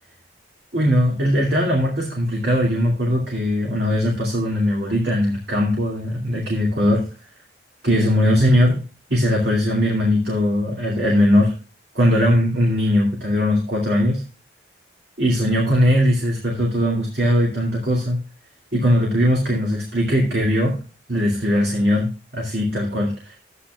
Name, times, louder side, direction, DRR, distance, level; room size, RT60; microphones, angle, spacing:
voice 1, 0.7-7.1 7.8-8.8 9.1-11.5 11.9-14.2 15.2-18.2 18.7-20.8 21.1-23.4, equal, 60° right, -1 dB, 2.5 m, -20 dB
12.5 x 9.7 x 2.4 m, 0.34 s
head